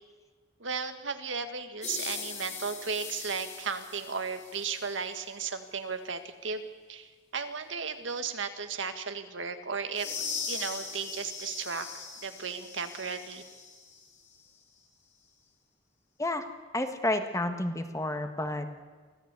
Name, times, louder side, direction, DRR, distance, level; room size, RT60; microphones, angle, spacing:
voice 1, 0.6-10.1 10.5-13.4, right 5 dB, 80° right, 8 dB, 1.7 m, -35 dB
sound 1, 1.8-4.9 9.9-14.0, left 5 dB, 35° left, 3.6 m, -40 dB
voice 2, 16.7-18.7, left 1 dB, 15° left, 7 dB, 1.6 m, -30 dB
24.5 x 16.0 x 8.3 m, 1.4 s
head